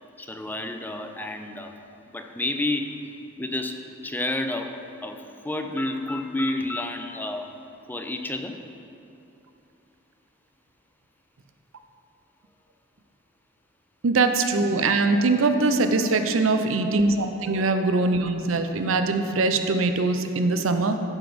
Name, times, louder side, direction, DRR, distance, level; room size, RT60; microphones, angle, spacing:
voice 1, 0.2-1.7 2.1-3.0 3.4-7.5 7.9-8.6, left 2 dB, 10° left, 5 dB, 0.4 m, -30 dB
voice 2, 14.0-21.0, right 3 dB, 75° right, 7 dB, 0.6 m, -22 dB
11.5 x 4.0 x 5.1 m, 2.9 s
head